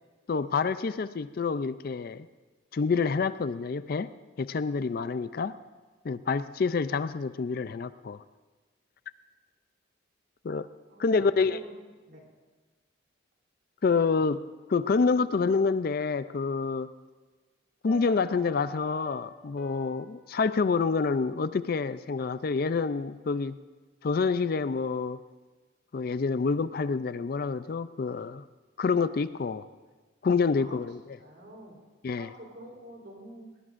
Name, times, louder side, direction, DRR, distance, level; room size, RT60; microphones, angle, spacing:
voice 1, 0.3-2.3 2.7-4.1 4.4-5.5 6.0-8.2 10.4-10.7 11.0-11.6 13.8-16.9 17.8-23.6 24.0-25.2 25.9-28.4 28.8-29.6 30.2-31.0 32.0-32.3, left 4 dB, 50° left, 14 dB, 0.4 m, -27 dB
voice 2, 10.9-11.7 12.1-12.2 30.6-30.8 31.2-31.8 32.2-33.5, right 1 dB, 55° right, 0 dB, 3.4 m, -47 dB
sound 1, 17.9-22.2 22.4-22.5, equal, ahead, 2.1 m, -52 dB
20.0 x 19.5 x 2.5 m, 1.3 s
head